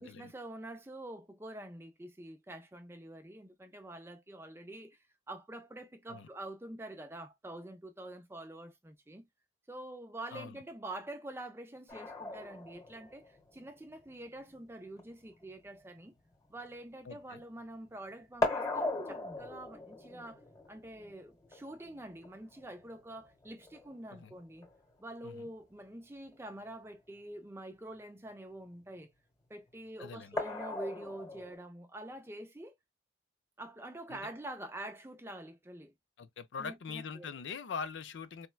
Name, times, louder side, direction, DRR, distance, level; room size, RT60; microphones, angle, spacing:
voice 1, 0.0-9.2 9.7-16.1 16.5-24.7 25.0-29.1 29.5-32.7 33.6-35.9 36.6-37.3, right 1 dB, 15° right, 0.5 m, -46 dB
sound 1, 11.9-17.6 17.9-24.9 26.3-26.4 26.8-26.9 30.4-31.6, left 2 dB, 20° left, 1.0 m, -40 dB
voice 2, 17.1-17.4 24.1-24.3 25.2-25.5 30.0-30.4 34.1-34.3 36.2-38.5, left 6 dB, 80° left, 0.4 m, -43 dB
4.3 x 2.1 x 2.2 m
head